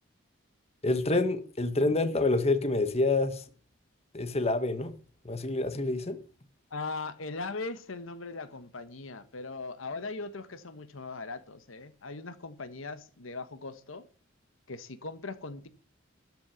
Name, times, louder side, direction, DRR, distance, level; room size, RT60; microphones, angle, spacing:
voice 1, 0.8-3.4 4.1-4.9 5.2-6.2, left 2 dB, 30° left, 1.3 m, -27 dB
voice 2, 6.7-14.1 14.7-15.7, left 3 dB, 85° left, 1.2 m, -39 dB
13.0 x 6.3 x 6.8 m
head